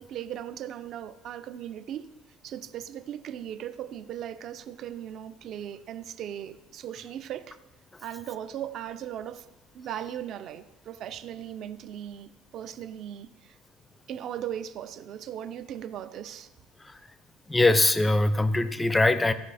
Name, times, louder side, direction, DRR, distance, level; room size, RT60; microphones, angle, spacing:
voice 1, 0.0-2.1 2.4-7.6 8.0-9.4 9.7-13.5 14.1-16.5, right 10 dB, 40° right, 0.5 m, -38 dB
voice 2, 17.5-19.3, left 2 dB, 10° left, 0.5 m, -22 dB
16.0 x 5.5 x 4.2 m
cardioid pair, 160°, 0 cm